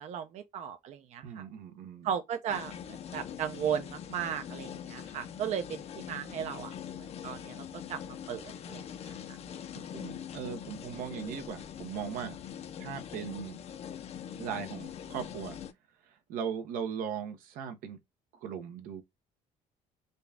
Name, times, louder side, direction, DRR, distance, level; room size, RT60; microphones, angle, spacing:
voice 1, 0.0-1.4 2.0-6.7 7.2-8.0 8.3-9.2, right 8 dB, 55° right, 0.5 m, -36 dB
voice 2, 1.2-2.1 9.9-12.4 12.8-13.6 14.4-15.6 16.0-18.0 18.3-19.0, right 7 dB, 85° right, 0.9 m, -38 dB
sound 1, 2.5-15.7, left 9 dB, 45° left, 0.6 m, -43 dB
3.9 x 2.3 x 3.4 m
cardioid pair, 135°, 14 cm